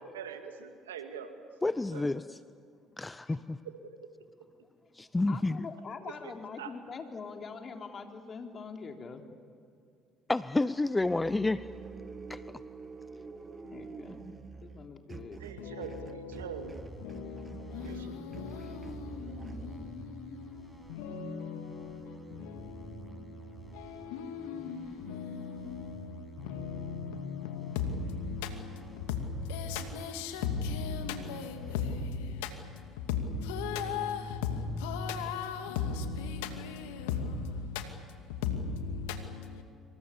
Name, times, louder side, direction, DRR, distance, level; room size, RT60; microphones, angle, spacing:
voice 1, 0.0-1.4 1.9-2.0 3.8-3.9 6.1-6.3 6.6-6.7 15.4-16.8 17.8-18.1, right 7 dB, 90° right, 2.2 m, -43 dB
voice 2, 1.6-2.2 3.0-3.6 4.9-5.7 10.3-11.7 12.3-12.4, left 2 dB, 15° left, 0.7 m, -29 dB
voice 3, 5.3-9.2 13.6-14.2 14.6-15.4, left 5 dB, 45° left, 3.4 m, -43 dB
sound 1, 11.0-19.7, right 4 dB, 30° right, 1.9 m, -46 dB
voice 4, 15.6-16.7 17.0-39.6, left 5 dB, 80° left, 2.4 m, -37 dB
sound 2, 16.4-31.7, right 2 dB, 10° right, 7.0 m, -51 dB
27.0 x 26.0 x 7.2 m
hypercardioid pair, 60°, 0 cm